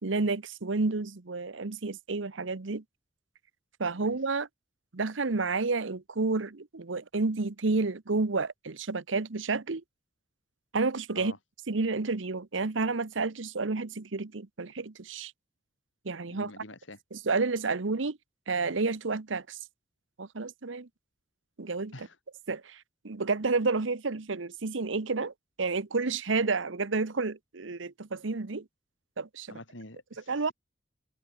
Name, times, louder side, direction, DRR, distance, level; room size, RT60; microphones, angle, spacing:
voice 1, 0.0-2.8 3.8-4.5 4.9-9.8 10.7-11.3 11.7-15.3 16.0-16.5 17.1-18.2 18.5-19.6 20.2-20.9 21.6-21.9 22.5-28.7 29.2-29.6 30.3-30.5, right 3 dB, 80° right, 1.0 m, -30 dB
voice 2, 16.3-17.0 21.9-22.2 29.5-30.3, left 2 dB, 75° left, 6.8 m, -46 dB
open air
head